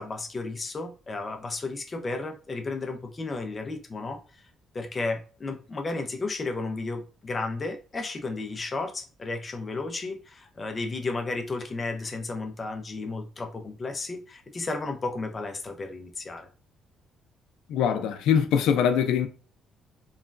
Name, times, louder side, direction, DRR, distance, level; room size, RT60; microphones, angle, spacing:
voice 1, 0.0-4.2 4.7-16.5, left 3 dB, 20° left, 0.4 m, -33 dB
voice 2, 17.7-19.3, left 8 dB, 90° left, 0.4 m, -23 dB
3.0 x 2.1 x 2.4 m
cardioid pair, 175°, 0 cm